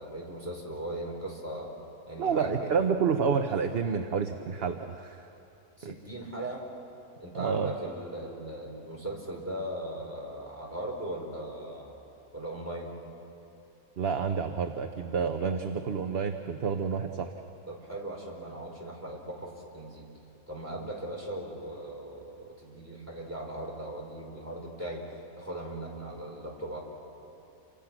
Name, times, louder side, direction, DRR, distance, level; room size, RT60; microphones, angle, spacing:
voice 1, 0.0-1.7 2.1-2.8 5.8-6.7 7.2-12.0 12.3-12.9 17.7-20.1 20.5-25.0 25.4-26.8, right 1 dB, 10° right, -2 dB, 4.3 m, -38 dB
voice 2, 2.2-5.3 5.8-5.9 7.3-7.7 14.0-17.3, right 6 dB, 45° right, 6 dB, 1.0 m, -29 dB
29.5 x 25.0 x 6.1 m, 2.8 s
omnidirectional pair, 1.6 m